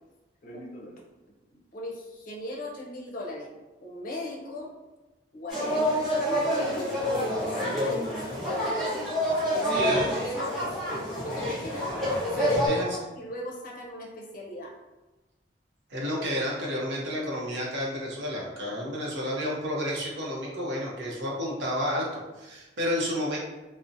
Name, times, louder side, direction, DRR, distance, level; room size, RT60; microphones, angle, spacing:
voice 1, 0.4-1.0 1.5-3.5 3.8-4.7 5.3-7.1 7.4-8.8 9.3-11.9 12.3-14.7, left 1 dB, 50° left, -2 dB, 0.5 m, -38 dB
sound 1, 5.5-12.7, equal, ahead, 0.7 m, -27 dB
voice 2, 9.7-10.1 12.6-12.9 15.9-23.4, equal, 75° right, -3 dB, 0.7 m, -31 dB
2.6 x 2.0 x 2.5 m, 1.1 s
head